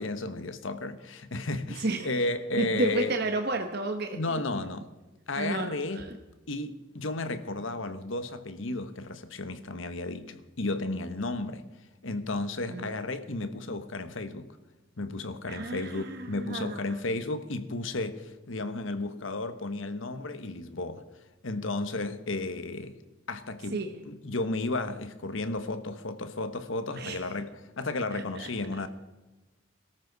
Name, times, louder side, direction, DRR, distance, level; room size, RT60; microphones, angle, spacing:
voice 1, 0.0-3.2 4.1-4.9 5.3-6.0 6.5-11.6 12.0-14.6 15.0-21.0 21.4-23.0 23.3-28.9, left 2 dB, 70° left, 1.2 m, -33 dB
voice 2, 1.8-2.2 2.6-4.4 5.4-6.1 12.7-13.0 15.5-16.8 23.7-23.9 27.0-27.2 28.1-28.5, right 2 dB, 50° right, 1.0 m, -32 dB
22.5 x 13.5 x 4.0 m
head